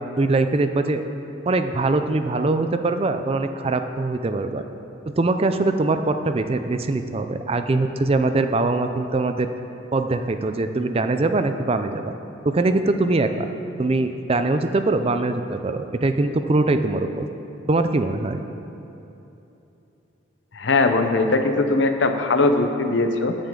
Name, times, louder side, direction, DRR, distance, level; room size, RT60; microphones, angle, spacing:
voice 1, 0.2-1.0 1.5-4.6 5.1-9.5 9.9-12.0 12.4-13.5 13.8-17.2 17.7-18.4, right 2 dB, 30° right, 8 dB, 0.4 m, -22 dB
voice 2, 20.5-23.4, left 3 dB, 65° left, 6 dB, 0.8 m, -20 dB
14.5 x 8.9 x 3.8 m, 3.0 s
head